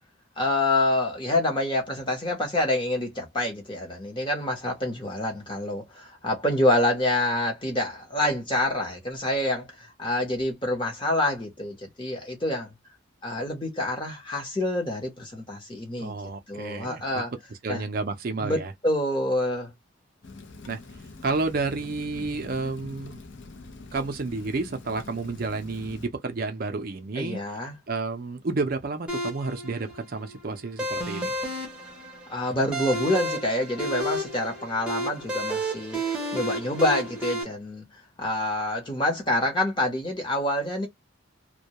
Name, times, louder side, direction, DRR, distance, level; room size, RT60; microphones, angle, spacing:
voice 1, 0.4-12.7 13.2-16.1 16.5-17.3 17.7-17.8 18.4-19.7 27.2-27.8 32.3-36.0 36.3-37.9 38.2-40.9, left 1 dB, 25° left, 0.8 m, -27 dB
voice 2, 16.0-17.0 17.5-18.7 20.7-20.8 21.2-23.2 23.9-27.6 27.9-31.3, right 3 dB, 45° right, 0.4 m, -30 dB
Rain, 20.2-26.1, left 3 dB, 65° left, 0.6 m, -44 dB
sound 1, 29.1-37.4, right 1 dB, 5° right, 0.7 m, -31 dB
2.2 x 2.2 x 2.8 m
head